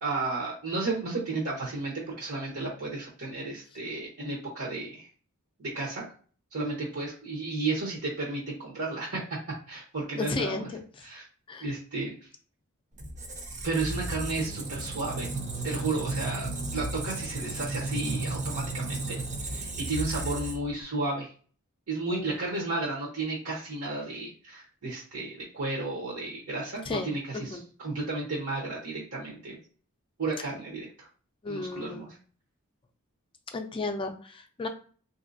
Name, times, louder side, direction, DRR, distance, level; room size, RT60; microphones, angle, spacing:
voice 1, 0.0-5.1 5.6-6.0 6.5-9.2 9.7-10.7 11.0-11.2 11.6-12.1 13.6-15.3 15.6-21.3 21.9-29.6 30.2-31.1 31.5-32.1, right 3 dB, 70° right, -4 dB, 0.9 m, -33 dB
voice 2, 10.2-11.1 11.5-11.7 22.1-22.4 26.9-27.6 31.4-32.1 33.5-34.7, left 3 dB, 25° left, 6 dB, 0.3 m, -34 dB
Squeak, 13.0-20.8, right 2 dB, 35° right, 0.5 m, -34 dB
3.2 x 2.7 x 2.6 m, 0.42 s
head